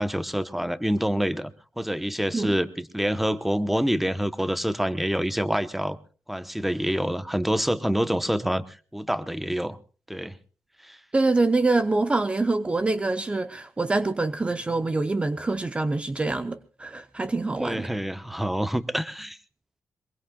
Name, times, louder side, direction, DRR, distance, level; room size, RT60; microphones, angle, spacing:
voice 1, 0.0-6.0 6.3-8.6 8.9-9.8 10.1-10.3 10.8-11.0 17.6-19.4, equal, 5° right, 1.0 m, -27 dB
voice 2, 11.1-17.9, right 3 dB, 20° right, 0.7 m, -25 dB
23.5 x 22.0 x 2.3 m
wide cardioid pair, 120°, 5 cm